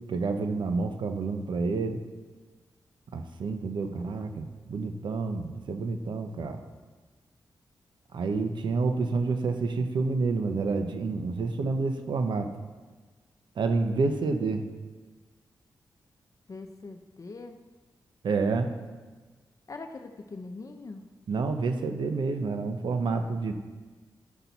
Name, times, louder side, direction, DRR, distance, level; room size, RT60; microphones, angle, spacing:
voice 1, 0.1-2.0 3.1-6.6 8.1-12.5 13.6-14.7 18.2-18.7 21.3-23.5, right 4 dB, 80° right, 6 dB, 0.8 m, -29 dB
voice 2, 16.5-17.6 19.7-21.0, left 3 dB, 45° left, 6 dB, 0.7 m, -42 dB
13.0 x 5.8 x 4.1 m, 1.3 s
cardioid pair, 70°, 8 cm